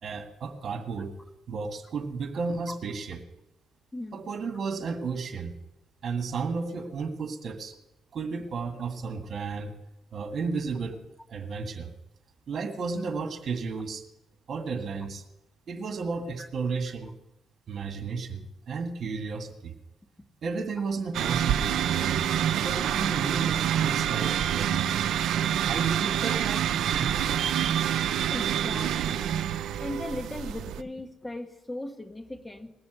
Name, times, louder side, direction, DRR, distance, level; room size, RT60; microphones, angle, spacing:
voice 1, 0.0-1.1 1.5-3.2 4.1-5.5 6.0-7.7 8.1-9.7 10.1-11.0 11.3-11.9 12.5-14.0 14.5-15.2 15.7-17.1 17.7-19.7 20.4-22.3 22.6-24.9 25.6-26.6 26.9-27.4, right 4 dB, 55° right, 7 dB, 1.8 m, -33 dB
sound 1, 21.1-30.8, right 10 dB, 80° right, 0.6 m, -27 dB
voice 2, 28.3-29.4 29.7-32.7, left 1 dB, 15° left, 8 dB, 1.2 m, -38 dB
19.5 x 7.0 x 8.0 m, 0.93 s
cardioid pair, 90°, 0 cm